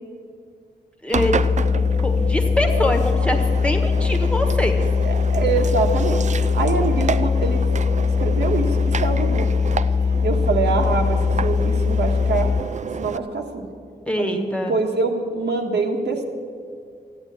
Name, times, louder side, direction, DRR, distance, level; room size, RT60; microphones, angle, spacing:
voice 1, 1.0-1.7 2.0-4.8 14.1-14.7, left 1 dB, 5° left, 4 dB, 1.3 m, -24 dB
Engine, 1.1-13.2, right 6 dB, 45° right, 0.5 m, -31 dB
sound 1, 1.2-12.6, left 5 dB, 40° left, 0.4 m, -21 dB
voice 2, 5.0-7.6 8.2-9.5 10.2-12.5 13.0-13.7 14.2-16.2, right 4 dB, 90° right, 1 dB, 1.7 m, -24 dB
14.5 x 9.0 x 8.8 m, 2.2 s
wide cardioid pair, 130°, 17 cm